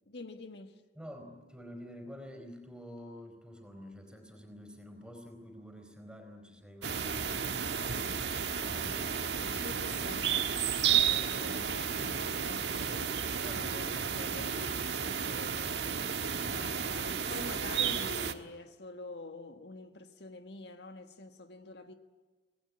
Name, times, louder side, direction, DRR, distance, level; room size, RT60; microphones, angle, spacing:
voice 1, 0.1-0.7 8.8-10.3 10.9-15.8 16.4-21.9, left 2 dB, 70° left, 1.6 m, -47 dB
voice 2, 0.9-8.1 8.6-9.3 13.4-13.9 16.4-16.9, equal, 5° right, 4.3 m, -48 dB
sound 1, 6.8-18.3, right 7 dB, 75° right, 1.5 m, -32 dB
25.5 x 19.5 x 9.8 m
head